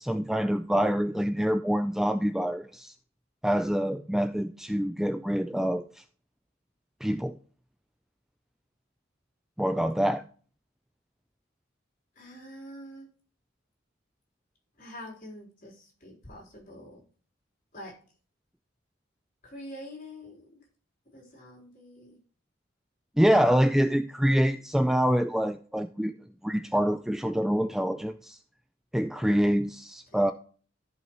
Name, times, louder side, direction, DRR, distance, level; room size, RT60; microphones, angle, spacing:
voice 1, 0.0-2.9 3.4-5.8 7.0-7.4 9.6-10.2 23.2-26.1 26.4-28.4 28.9-30.3, equal, ahead, 8 dB, 0.3 m, -26 dB
voice 2, 12.2-13.1 14.8-17.0 17.7-17.9 19.4-20.3 21.1-22.2 30.1-30.3, left 1 dB, 45° left, -1 dB, 3.8 m, -45 dB
14.0 x 5.5 x 3.0 m, 0.41 s
head